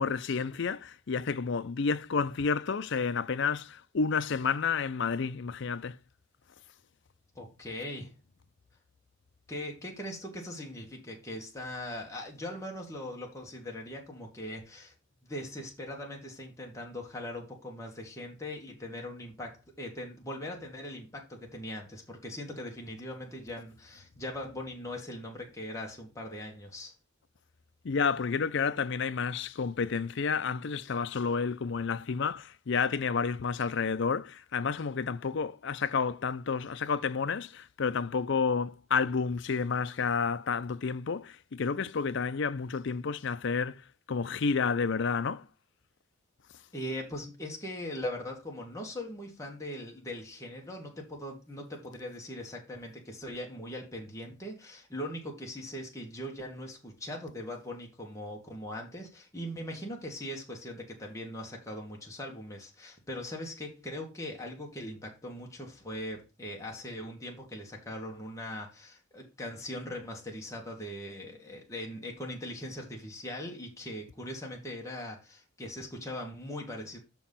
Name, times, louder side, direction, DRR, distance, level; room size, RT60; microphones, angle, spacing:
voice 1, 0.0-6.0 27.8-45.5, left 5 dB, 60° left, 0.5 m, -30 dB
voice 2, 7.4-8.2 9.5-14.9 15.2-26.9 46.7-77.0, left 1 dB, 15° left, 1.9 m, -40 dB
6.3 x 4.6 x 5.6 m
head